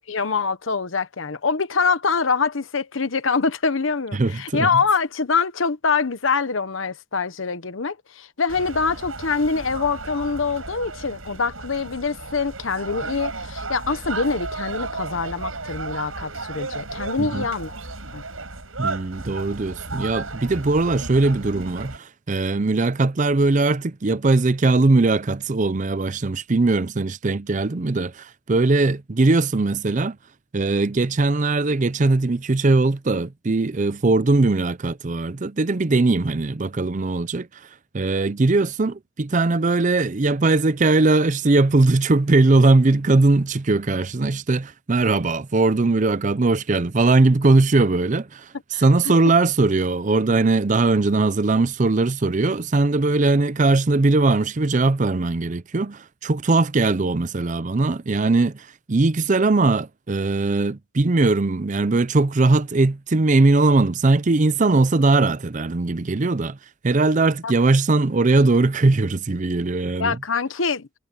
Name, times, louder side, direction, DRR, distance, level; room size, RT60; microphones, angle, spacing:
voice 1, 0.1-17.7 18.1-18.2 48.7-49.1 67.4-67.5 70.0-70.9, left 4 dB, 75° left, 1.1 m, -24 dB
voice 2, 4.1-4.7 17.2-17.5 18.8-30.2 30.5-37.5 37.9-48.5 48.8-66.6 66.8-70.2, right 3 dB, 35° right, 0.6 m, -20 dB
sound 1, 8.5-22.0, right 3 dB, 80° right, 7.7 m, -34 dB
head